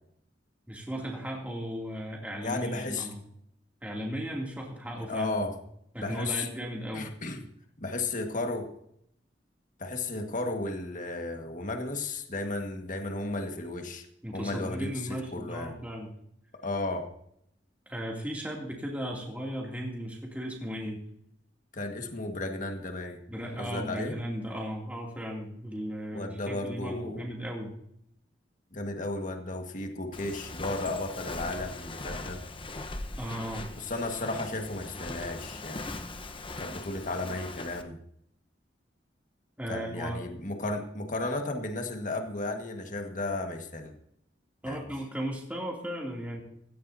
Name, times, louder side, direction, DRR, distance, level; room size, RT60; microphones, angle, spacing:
voice 1, 0.7-3.2 3.8-5.4 5.9-7.1 14.2-16.1 17.9-21.0 23.3-27.7 33.2-33.7 39.6-40.2 44.6-46.4, equal, 10° right, -2 dB, 2.7 m, -36 dB
voice 2, 2.4-3.1 5.1-5.6 6.0-6.5 6.9-7.4 7.8-8.7 9.8-14.1 14.3-15.7 16.6-17.1 21.7-23.2 23.6-24.2 26.1-27.3 28.7-32.4 33.8-35.8 36.6-38.0 39.7-43.9 44.6-44.8, left 2 dB, 45° left, 4 dB, 1.7 m, -34 dB
Walk footsteps, 30.1-37.8, left 2 dB, 30° left, 1.0 m, -40 dB
17.5 x 14.5 x 2.8 m, 0.72 s
head